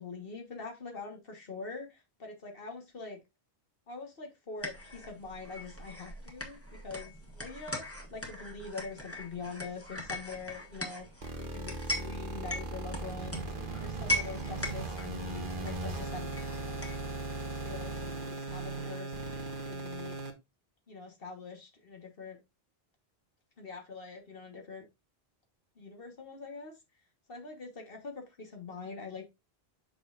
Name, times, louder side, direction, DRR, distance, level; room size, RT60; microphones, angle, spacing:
voice 1, 0.0-3.2 3.9-11.1 11.4-13.5 13.8-16.3 16.7-16.8 17.4-19.2 19.7-20.2 20.9-22.4 23.6-24.9 25.8-26.7 27.3-29.2, left 4 dB, 65° left, 1.6 m, -44 dB
sound 1, 4.6-17.1, left 1 dB, 15° left, 1.5 m, -40 dB
sound 2, 11.2-20.3, right 3 dB, 55° right, 1.3 m, -38 dB
6.7 x 6.2 x 2.5 m
omnidirectional pair, 1.0 m